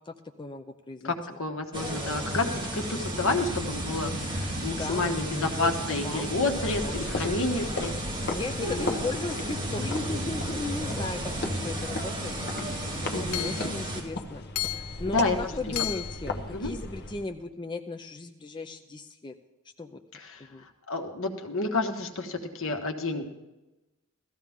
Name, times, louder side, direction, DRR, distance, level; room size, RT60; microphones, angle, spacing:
voice 1, 0.0-1.4 4.7-5.7 6.0-7.0 8.3-19.3 19.8-20.0 20.4-20.6, left 3 dB, 20° left, 5 dB, 0.5 m, -37 dB
voice 2, 1.0-7.9 8.6-9.1 13.1-13.6 15.1-15.5 16.5-16.7 20.1-23.2, left 3 dB, 65° left, 4 dB, 1.5 m, -30 dB
sound 1, 1.7-14.0, right 1 dB, 20° right, 2.7 m, -33 dB
sound 2, 6.4-17.3, left 2 dB, 50° left, 1.0 m, -37 dB
Hammer / Chink clink, 12.4-12.5 13.3-13.7 14.6-15.0 15.8-16.2, left 15 dB, 85° left, 0.5 m, -33 dB
17.0 x 14.0 x 3.6 m, 1.0 s
head